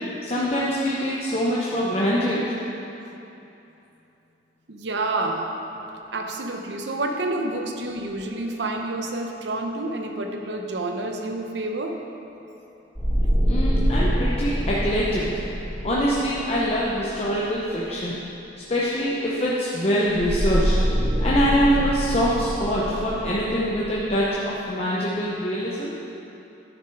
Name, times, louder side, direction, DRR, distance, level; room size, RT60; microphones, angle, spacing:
voice 1, 0.2-2.5 13.4-15.3 15.8-18.2 18.7-26.0, equal, 35° left, -6 dB, 0.8 m, -24 dB
voice 2, 4.7-5.6 6.1-12.0, right 2 dB, 70° right, 3 dB, 0.8 m, -29 dB
sound 1, 13.0-17.4 20.1-24.2, equal, 15° right, 1.8 m, -25 dB
10.0 x 6.4 x 4.7 m, 2.9 s
head